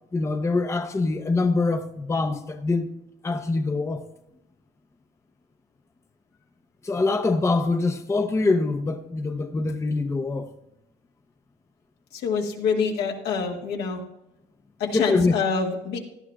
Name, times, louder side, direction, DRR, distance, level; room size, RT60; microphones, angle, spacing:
voice 1, 0.1-2.9 3.2-4.0 6.8-10.5 14.9-15.4, left 3 dB, 15° left, 0.6 m, -24 dB
voice 2, 12.1-14.0 14.8-16.0, left 5 dB, 80° left, 1.7 m, -26 dB
17.0 x 11.5 x 2.3 m
cardioid pair, 110°, 17 cm